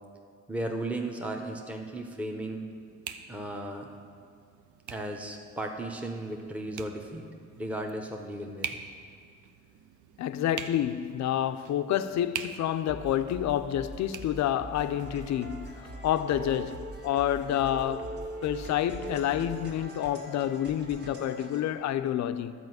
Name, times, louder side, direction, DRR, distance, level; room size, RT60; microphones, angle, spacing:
voice 1, 0.5-2.7 3.3-3.9 4.9-7.2 7.6-8.8, right 1 dB, 5° right, 0.9 m, -35 dB
sound 1, 0.6-15.8, right 8 dB, 75° right, 0.6 m, -46 dB
voice 2, 10.2-18.1 18.4-22.5, left 11 dB, 65° left, 0.5 m, -29 dB
sound 2, 12.9-19.7, right 1 dB, 50° right, 2.0 m, -44 dB
sound 3, 15.0-21.6, right 1 dB, 35° right, 1.6 m, -43 dB
11.0 x 5.0 x 7.9 m
cardioid pair, 90°, 30 cm